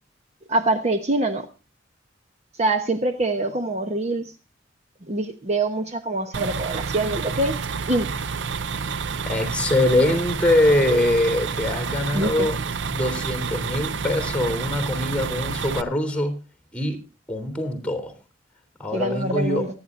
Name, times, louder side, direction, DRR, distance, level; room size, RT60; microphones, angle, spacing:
voice 1, 0.5-1.5 2.6-4.3 5.1-7.6 7.9-8.1 12.1-12.5 18.9-19.7, right 2 dB, 35° right, 6 dB, 1.1 m, -24 dB
sound 1, 6.3-15.8, right 5 dB, 70° right, 0.6 m, -29 dB
voice 2, 9.2-12.6 12.9-16.4 16.7-17.0 17.3-18.1 18.8-19.7, left 1 dB, 5° left, 7 dB, 3.5 m, -23 dB
25.0 x 9.9 x 2.6 m, 0.32 s
head